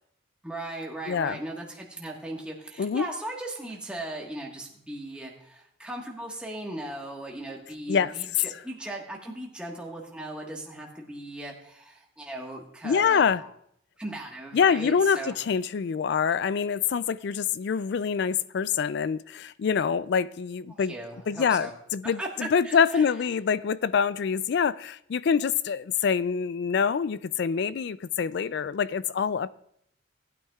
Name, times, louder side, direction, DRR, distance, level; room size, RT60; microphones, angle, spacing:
voice 1, 0.4-13.5 14.0-15.4 20.7-21.7 22.2-22.3 22.6-23.1, right 1 dB, 5° right, 1.4 m, -38 dB
voice 2, 1.1-1.4 2.8-3.1 7.9-8.1 12.8-13.4 14.5-20.9 21.3-29.5, left 6 dB, 55° left, 0.3 m, -25 dB
18.5 x 9.2 x 2.4 m
head